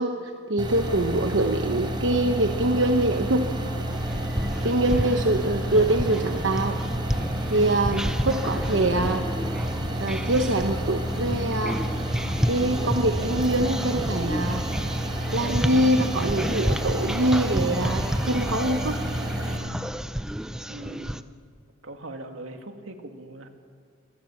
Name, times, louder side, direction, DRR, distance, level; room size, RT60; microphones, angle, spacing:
voice 1, 0.0-3.5 4.6-6.8 7.5-9.2 10.0-11.8 12.5-14.6 15.3-19.0, right 1 dB, 65° right, 5 dB, 1.1 m, -24 dB
sound 1, 0.6-19.6, equal, 25° right, 3.7 m, -30 dB
sound 2, 3.9-21.2, equal, 5° right, 0.5 m, -31 dB
voice 2, 20.7-21.3 21.8-23.5, right 2 dB, 80° right, 5 dB, 2.3 m, -40 dB
27.0 x 21.5 x 7.3 m, 2.1 s
head